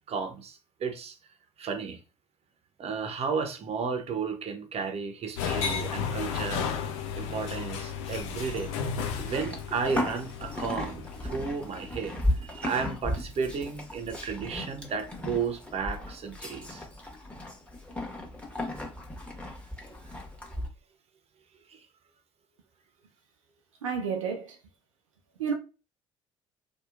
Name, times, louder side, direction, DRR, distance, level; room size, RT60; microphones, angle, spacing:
voice 1, 0.1-1.2 1.6-2.0 2.8-6.7 7.2-8.7 9.2-16.8 21.7-21.9, right 5 dB, 40° right, 0.7 m, -33 dB
sound 1, 5.4-12.1, left 7 dB, 75° left, 0.5 m, -34 dB
Livestock farm animals working animals, 8.2-20.7, left 1 dB, 5° left, 1.1 m, -36 dB
voice 2, 23.8-24.6 25.4-25.5, right 6 dB, 85° right, 0.4 m, -30 dB
2.8 x 2.3 x 2.4 m
figure-of-eight pair, 55°, 16 cm